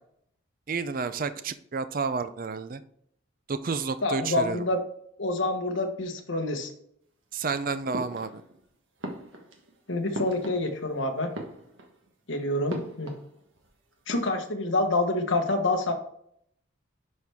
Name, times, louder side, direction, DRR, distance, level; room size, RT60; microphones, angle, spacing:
voice 1, 0.7-2.8 3.5-4.6 7.3-8.4, right 4 dB, 40° right, 11 dB, 0.4 m, -30 dB
voice 2, 4.0-4.8 5.2-6.7 9.9-11.3 12.3-13.1 14.1-15.9, left 2 dB, 65° left, 5 dB, 1.2 m, -27 dB
sound 1, 7.9-8.6 9.0-11.0 11.2-12.1 12.7-13.7 13.9-14.5, right 1 dB, 65° right, 1.3 m, -40 dB
11.0 x 4.5 x 3.5 m, 0.70 s
head